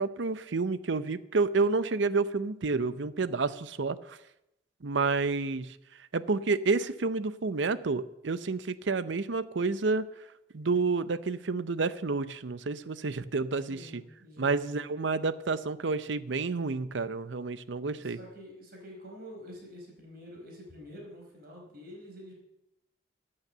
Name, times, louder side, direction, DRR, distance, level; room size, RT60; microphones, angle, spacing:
voice 1, 0.0-4.2 4.8-5.8 6.1-10.1 10.5-14.0 14.4-18.2, right 4 dB, 80° right, 15 dB, 0.7 m, -29 dB
voice 2, 13.5-14.6 17.9-22.3, equal, 55° right, 0 dB, 4.8 m, -47 dB
15.0 x 8.8 x 6.7 m, 0.87 s
head